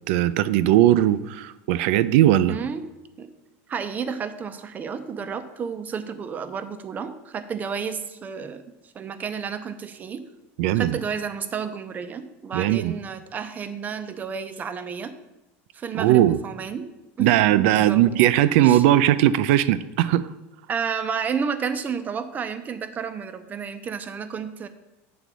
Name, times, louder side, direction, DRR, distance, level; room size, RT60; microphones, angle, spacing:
voice 1, 0.1-2.6 10.6-11.0 12.5-12.9 15.9-16.4 17.2-20.3, right 13 dB, 70° right, 16 dB, 0.4 m, -19 dB
voice 2, 2.5-2.9 3.2-3.3 3.7-8.6 8.9-10.3 10.7-15.1 15.7-16.9 17.2-18.0 18.6-18.8 20.7-24.7, right 6 dB, 25° right, 10 dB, 0.6 m, -31 dB
8.4 x 3.9 x 6.1 m, 0.98 s
supercardioid pair, 135°, 7 cm